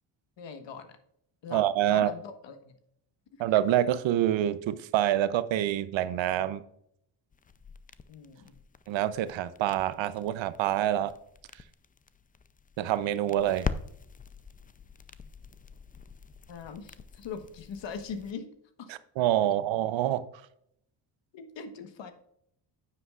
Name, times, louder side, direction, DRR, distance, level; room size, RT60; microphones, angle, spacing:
voice 1, 0.4-1.0 1.4-2.8 8.1-8.5 16.5-18.9 19.4-19.5 21.3-22.1, left 6 dB, 65° left, 9 dB, 1.3 m, -41 dB
voice 2, 1.5-2.1 3.4-6.6 8.9-11.1 12.8-13.7 18.9-20.2, right 12 dB, 70° right, 14 dB, 0.7 m, -26 dB
sound 1, 7.3-18.3, left 5 dB, 20° left, 0.4 m, -43 dB
9.5 x 7.9 x 2.4 m, 0.72 s
cardioid pair, 85°, 48 cm